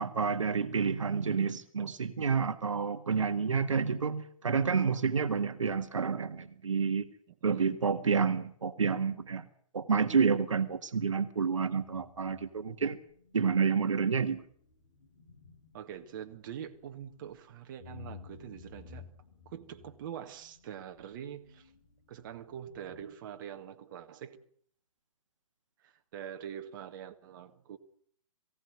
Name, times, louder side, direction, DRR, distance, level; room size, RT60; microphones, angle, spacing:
voice 1, 0.0-7.1 7.4-9.5 9.7-13.0 13.3-14.4, right 5 dB, 65° right, 1.7 m, -29 dB
voice 2, 7.4-7.8 11.7-12.0 15.7-19.1 19.4-21.7 22.1-24.4 25.8-27.8, right 9 dB, 35° right, 1.8 m, -44 dB
sound 1, 11.7-23.2, left 6 dB, 55° left, 6.4 m, -55 dB
22.5 x 17.0 x 9.4 m
figure-of-eight pair, 125°, 18 cm